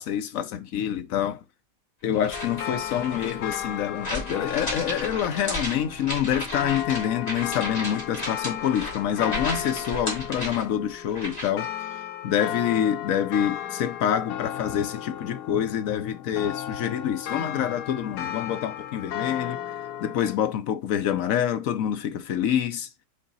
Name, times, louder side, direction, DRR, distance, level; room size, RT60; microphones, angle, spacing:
voice 1, 0.0-1.4 2.0-11.7 12.2-19.6 20.0-22.9, left 9 dB, 65° left, 1.1 m, -26 dB
sound 1, 2.1-11.7, left 1 dB, 25° left, 2.6 m, -35 dB
sound 2, 2.3-20.4, left 10 dB, 90° left, 1.2 m, -35 dB
6.2 x 3.7 x 4.1 m
omnidirectional pair, 1.6 m